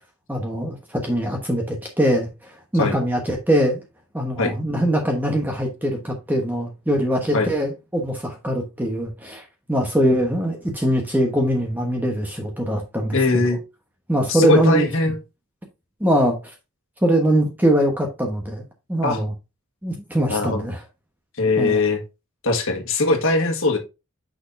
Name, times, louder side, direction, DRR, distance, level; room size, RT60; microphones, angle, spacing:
voice 1, 0.3-2.3 2.7-3.8 4.1-13.2 14.1-14.9 16.0-16.5 17.0-18.6 18.9-19.3 19.8-20.8 21.6-21.8, equal, 10° right, 1.1 m, -22 dB
voice 2, 13.1-13.6 14.3-15.2 19.0-19.2 20.3-20.6 21.4-22.0 22.4-23.8, left 2 dB, 60° left, 1.6 m, -20 dB
6.2 x 6.2 x 2.6 m
head